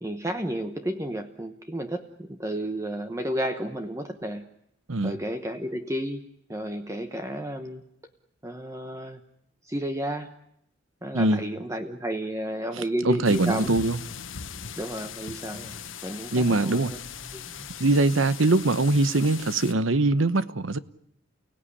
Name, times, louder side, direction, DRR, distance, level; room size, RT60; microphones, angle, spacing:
voice 1, 0.0-4.4 5.0-6.2 6.5-7.8 8.4-9.2 9.7-10.3 11.0-13.7 14.8-15.7 16.0-17.0 17.3-17.7, right 1 dB, 15° right, 1.0 m, -32 dB
voice 2, 11.1-11.5 12.7-14.0 16.3-17.0 17.8-20.8, right 2 dB, 85° right, 1.0 m, -22 dB
sound 1, 13.2-19.7, left 7 dB, 85° left, 1.5 m, -39 dB
30.0 x 17.5 x 9.9 m
head